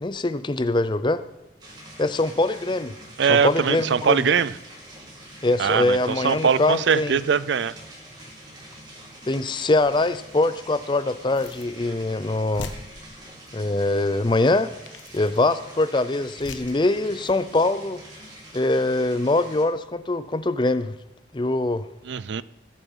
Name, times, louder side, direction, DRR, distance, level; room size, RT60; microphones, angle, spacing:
voice 1, 0.0-1.2 2.0-2.9 3.3-4.3 5.4-7.2 9.3-12.7 13.5-14.7 15.1-18.0 18.5-21.0 21.3-21.8, left 2 dB, 25° left, 14 dB, 0.5 m, -23 dB
sound 1, 1.6-19.6, right 1 dB, 20° right, 2.7 m, -45 dB
voice 2, 3.2-4.5 5.6-7.7 22.1-22.4, right 6 dB, 70° right, 18 dB, 0.4 m, -21 dB
sound 2, 9.8-10.2 11.3-11.8 12.1-12.2 12.5-13.5 14.4-14.5 14.8-15.4 16.4-16.8 17.2-17.4, left 3 dB, 80° left, 1.1 m, -41 dB
19.0 x 7.2 x 5.5 m, 0.97 s
head